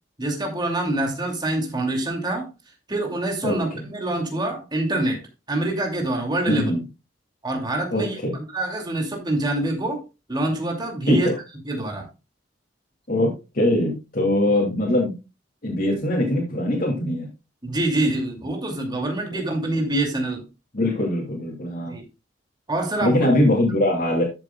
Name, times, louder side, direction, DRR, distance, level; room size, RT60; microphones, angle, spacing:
voice 1, 0.2-2.5 2.9-6.7 7.4-10.0 10.3-11.3 11.6-12.1 17.6-20.5 21.9-22.0 22.7-23.3, right 2 dB, 25° right, 1 dB, 2.7 m, -25 dB
voice 2, 6.5-6.8 7.9-8.3 11.1-11.3 13.1-13.3 13.5-15.1 15.6-17.3 19.3-19.4 20.7-21.9 23.0-24.2, left 1 dB, 55° left, -3 dB, 2.7 m, -22 dB
13.0 x 7.5 x 2.4 m, 0.27 s
head